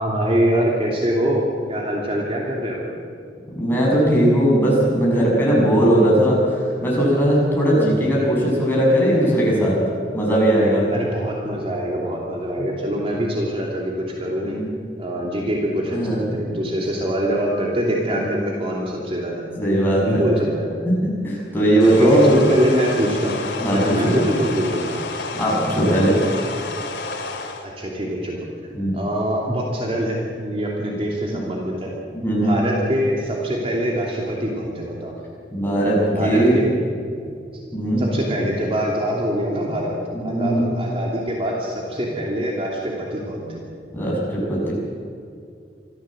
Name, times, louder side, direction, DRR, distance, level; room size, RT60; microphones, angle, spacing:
voice 1, 0.0-1.4 1.7-2.9 10.9-14.6 15.0-20.7 22.0-23.4 23.7-24.9 27.6-28.4 28.9-31.9 32.3-35.1 36.1-36.7 38.0-40.0 40.2-43.6, equal, 35° right, -2 dB, 2.9 m, -24 dB
voice 2, 3.5-9.8 10.1-10.9 12.6-12.9 14.4-14.7 15.9-16.2 18.1-18.3 19.6-20.2 20.9-22.2 23.2-23.3 23.6-24.3 25.3-26.2 28.7-29.0 31.3-31.4 32.1-32.6 35.5-36.6 37.7-38.0 40.1-40.7 43.9-44.7, right 1 dB, 10° left, -5 dB, 7.2 m, -19 dB
sound 1, 21.8-27.7, left 3 dB, 80° left, 2.4 m, -30 dB
25.5 x 14.5 x 7.9 m, 2.4 s
head